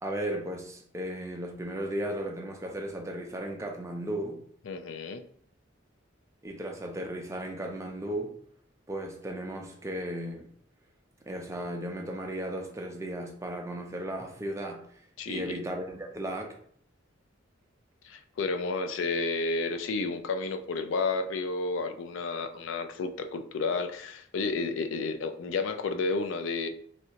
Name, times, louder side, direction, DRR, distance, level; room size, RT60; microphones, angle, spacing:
voice 1, 0.0-4.4 6.4-8.3 8.9-10.5 11.2-16.6, right 1 dB, 15° right, 2 dB, 0.4 m, -35 dB
voice 2, 4.7-5.2 15.2-15.6 18.0-26.7, left 3 dB, 75° left, 8 dB, 0.4 m, -31 dB
3.2 x 2.8 x 2.8 m, 0.62 s
head